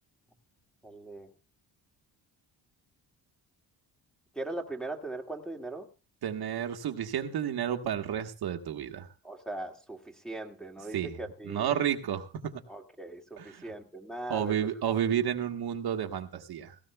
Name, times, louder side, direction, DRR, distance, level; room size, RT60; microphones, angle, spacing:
voice 1, 0.8-1.3 4.3-5.9 9.2-11.8 12.7-14.5 14.9-15.0, right 2 dB, ahead, -1 dB, 2.0 m, -40 dB
voice 2, 6.2-9.1 10.9-12.6 13.4-13.7 14.3-16.8, right 9 dB, 70° right, 5 dB, 1.4 m, -31 dB
17.5 x 16.5 x 2.3 m, 0.33 s
cardioid pair, 120°, 39 cm